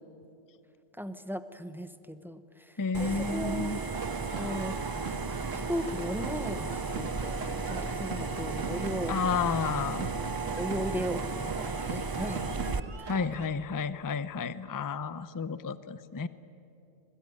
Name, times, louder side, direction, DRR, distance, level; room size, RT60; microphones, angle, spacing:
voice 1, 1.0-3.8 4.4-4.8 5.5-9.2 10.6-12.4 12.8-13.1, equal, ahead, 10 dB, 0.8 m, -37 dB
voice 2, 2.8-3.8 9.1-10.1 13.1-16.3, left 5 dB, 25° left, 14 dB, 0.5 m, -31 dB
sound 1, 2.9-12.8, right 4 dB, 30° right, 0.4 m, -34 dB
sound 2, 3.9-13.5, right 4 dB, 75° right, 1.9 m, -41 dB
27.0 x 21.5 x 9.5 m, 2.8 s
omnidirectional pair, 1.3 m